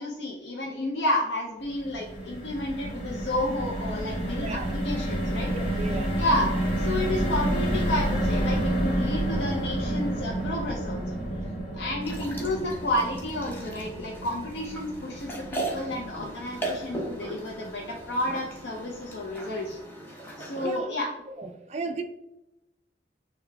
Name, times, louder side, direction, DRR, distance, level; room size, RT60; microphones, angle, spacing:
voice 1, 0.0-5.5 6.2-6.5 6.8-11.1 11.7-19.8 20.4-21.1, left 1 dB, 85° left, -2 dB, 0.6 m, -31 dB
sound 1, 1.6-17.9 18.3-18.4 18.7-18.9, right 1 dB, 30° left, 1.4 m, -30 dB
voice 2, 4.4-4.7 5.5-6.1 20.6-20.9 21.4-22.0, right 3 dB, 40° right, 6 dB, 0.3 m, -35 dB
sound 2, 12.0-20.8, right 2 dB, 10° left, 0.7 m, -38 dB
6.6 x 2.3 x 3.3 m, 0.93 s
head